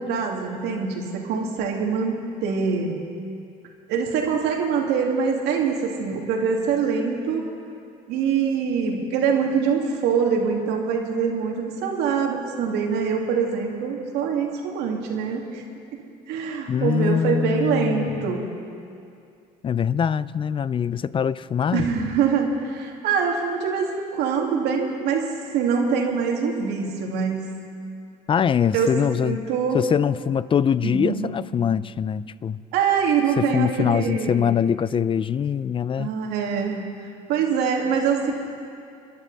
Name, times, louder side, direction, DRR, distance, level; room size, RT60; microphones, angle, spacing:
voice 1, 0.0-3.0 3.9-7.4 8.1-15.6 16.3-18.5 21.7-25.3 25.5-27.4 28.7-28.9 29.2-29.8 30.8-31.2 32.7-34.6 36.0-36.9 37.3-38.3, right 6 dB, 70° right, 2.5 m, -24 dB
voice 2, 16.7-18.4 19.6-21.9 28.3-29.4 29.7-32.6 33.4-36.1, left 7 dB, 30° left, 0.5 m, -23 dB
29.0 x 11.0 x 4.1 m
supercardioid pair, 85°, 18 cm